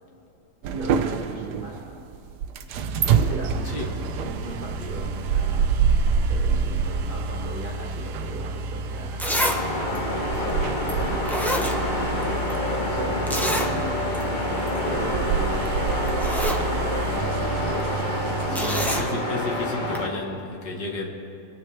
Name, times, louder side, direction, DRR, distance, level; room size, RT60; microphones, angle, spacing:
sound 1, 0.6-19.1, right 5 dB, 85° right, 1.2 m, -27 dB
voice 1, 0.7-2.0 2.6-2.7 3.2-5.8 6.1-10.1 10.5-11.8 12.9-14.3 14.8-16.5 18.5-18.8, right 1 dB, 30° right, -2 dB, 1.7 m, -38 dB
voice 2, 3.6-4.1 18.5-21.1, left 2 dB, 80° left, 0 dB, 2.0 m, -32 dB
Zipper (clothing), 8.7-8.8 9.2-9.6 9.9-10.0 10.9-11.0 11.3-12.2 12.5-12.6 13.3-13.7 14.1-14.2 14.6-14.8 15.7-15.8 16.1-16.6 18.5-19.1 19.9-20.0, equal, ahead, 0.4 m, -27 dB
sound 2, 9.3-20.1, left 2 dB, 30° left, 1.3 m, -28 dB
26.0 x 9.3 x 3.3 m, 2.7 s
omnidirectional pair, 1.7 m